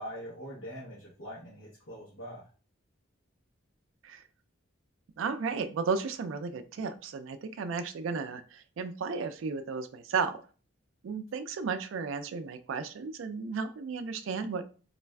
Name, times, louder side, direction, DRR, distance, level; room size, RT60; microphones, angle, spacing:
voice 1, 0.0-2.5, equal, 75° left, -6 dB, 0.9 m, -43 dB
voice 2, 5.2-10.4 11.0-14.6, right 5 dB, 75° right, 9 dB, 0.3 m, -34 dB
3.2 x 2.4 x 2.2 m, 0.38 s
head